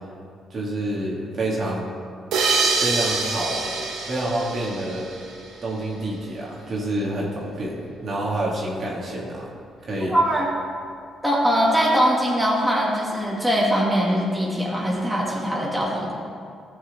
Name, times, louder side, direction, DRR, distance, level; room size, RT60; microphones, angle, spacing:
voice 1, 0.5-1.9 2.8-3.7 4.1-5.1 5.6-9.5 9.8-10.2, right 1 dB, 50° right, -4 dB, 2.3 m, -28 dB
sound 1, 2.3-5.6, right 4 dB, 85° right, 1.3 m, -25 dB
voice 2, 10.1-10.5 11.2-16.1, equal, 5° right, -5 dB, 2.4 m, -21 dB
15.0 x 6.2 x 3.7 m, 2.3 s
cardioid pair, 90°, 0 cm